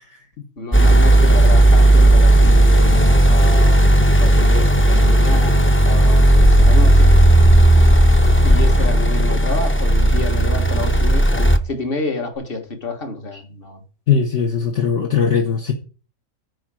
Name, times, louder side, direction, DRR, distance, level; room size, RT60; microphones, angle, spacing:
voice 1, 0.6-3.8 4.2-7.1 8.4-13.8, left 2 dB, 40° left, 1.9 m, -28 dB
sound 1, 0.7-11.6, right 1 dB, 20° left, 0.3 m, -13 dB
sound 2, 6.3-9.1, left 3 dB, 90° left, 2.7 m, -21 dB
voice 2, 14.1-15.7, left 6 dB, 60° left, 1.4 m, -19 dB
9.2 x 4.8 x 7.6 m
omnidirectional pair, 1.4 m